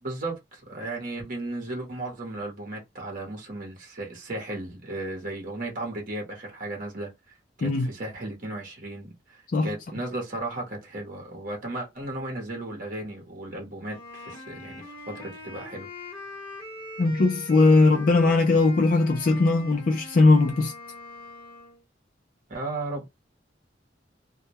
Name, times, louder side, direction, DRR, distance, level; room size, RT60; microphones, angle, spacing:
voice 1, 0.0-7.1 7.6-14.8 15.1-15.9 22.5-23.1, right 2 dB, 50° right, 0.9 m, -35 dB
Wind instrument woodwind instrument, 13.9-21.8, left 2 dB, 30° left, 1.0 m, -42 dB
voice 2, 17.0-20.7, left 3 dB, 50° left, 0.4 m, -19 dB
2.2 x 2.1 x 2.8 m
head